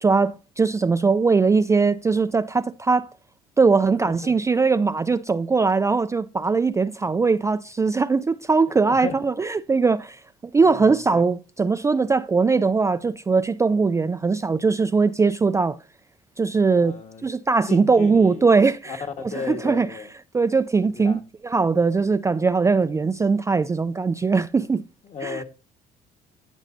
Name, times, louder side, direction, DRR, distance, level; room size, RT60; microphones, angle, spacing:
voice 1, 0.0-3.1 3.6-10.2 10.5-15.8 16.4-17.0 17.2-19.0 19.2-19.9 20.3-24.8 25.2-25.4, right 4 dB, 15° right, 0.4 m, -20 dB
voice 2, 8.7-9.2 10.6-11.2 16.7-17.3 17.7-18.5 18.9-20.1 20.9-21.2 25.0-25.4, left 5 dB, 45° left, 1.6 m, -35 dB
15.5 x 5.3 x 2.7 m
cardioid pair, 110°, 17 cm